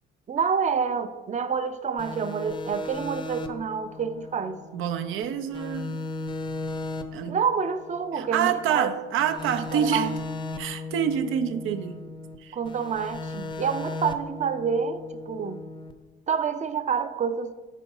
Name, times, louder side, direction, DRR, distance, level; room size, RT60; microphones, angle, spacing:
voice 1, 0.3-4.6 7.3-9.0 9.7-10.1 12.5-15.6 16.3-17.5, right 6 dB, 35° right, 11 dB, 0.5 m, -28 dB
sound 1, 2.0-5.2 5.5-8.8 9.2-12.4 12.7-15.9, left 2 dB, 25° left, 0.5 m, -37 dB
voice 2, 4.7-6.0 7.1-7.4 8.1-10.1 10.6-12.0 12.4-12.6, right 8 dB, 85° right, 9 dB, 0.5 m, -27 dB
5.8 x 4.1 x 5.4 m, 1.2 s
cardioid pair, 90°, 20 cm